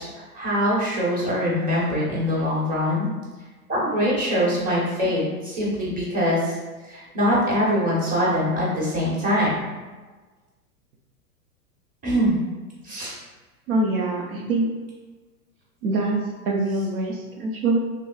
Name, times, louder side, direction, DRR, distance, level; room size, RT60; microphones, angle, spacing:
voice 1, 0.0-3.1 3.7-6.5 6.9-9.5 12.0-12.4 12.8-13.1, equal, 20° right, -6 dB, 1.3 m, -23 dB
voice 2, 13.7-14.7 15.8-16.2 16.4-17.8, right 2 dB, 70° right, 0 dB, 0.6 m, -24 dB
3.3 x 2.9 x 2.3 m, 1.3 s
hypercardioid pair, 100°, 45 cm